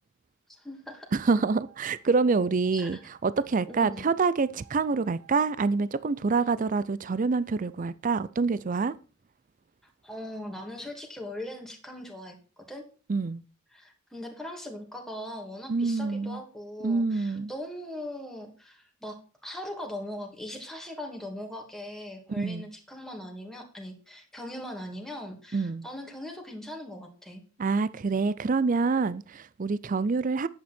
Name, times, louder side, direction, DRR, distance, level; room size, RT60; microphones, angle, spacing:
voice 1, 0.5-1.1 2.7-3.0 3.7-4.1 9.8-12.8 13.7-27.4, left 1 dB, ahead, 2.6 m, -40 dB
voice 2, 1.1-8.9 13.1-13.4 15.7-16.4 16.8-17.5 22.3-22.7 25.5-25.9 27.6-30.5, right 4 dB, 40° right, 0.4 m, -26 dB
sound 1, 1.2-3.9 4.4-5.5 6.0-6.1, right 8 dB, 20° right, 2.5 m, -58 dB
10.5 x 8.8 x 4.4 m
head